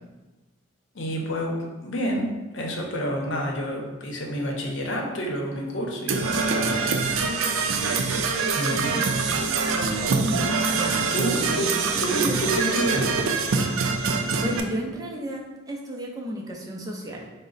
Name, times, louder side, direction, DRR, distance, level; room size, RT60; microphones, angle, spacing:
voice 1, 0.9-6.9 8.5-9.0 10.9-13.2, equal, 70° left, 0 dB, 0.7 m, -29 dB
Percussion / Brass instrument, 6.1-14.6, right 4 dB, 90° right, 0.4 m, -24 dB
voice 2, 10.2-12.4 14.4-17.3, equal, 20° right, -1 dB, 0.4 m, -33 dB
4.8 x 2.0 x 3.9 m, 1.1 s
head